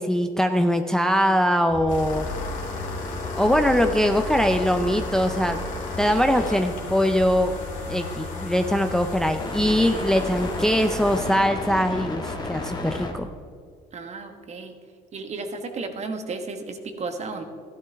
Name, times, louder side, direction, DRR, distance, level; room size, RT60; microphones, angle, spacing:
voice 1, 0.0-2.3 3.3-5.6 6.0-7.5 7.9-13.3, equal, 5° left, 7 dB, 0.5 m, -22 dB
sound 1, 1.7-13.1, left 2 dB, 25° left, 1.7 m, -34 dB
sound 2, 1.9-11.3, left 2 dB, 45° left, 2.8 m, -35 dB
voice 2, 13.9-14.7 15.1-17.4, right 3 dB, 40° right, 6 dB, 1.4 m, -33 dB
13.5 x 12.0 x 3.5 m, 2.2 s
cardioid pair, 110°, 17 cm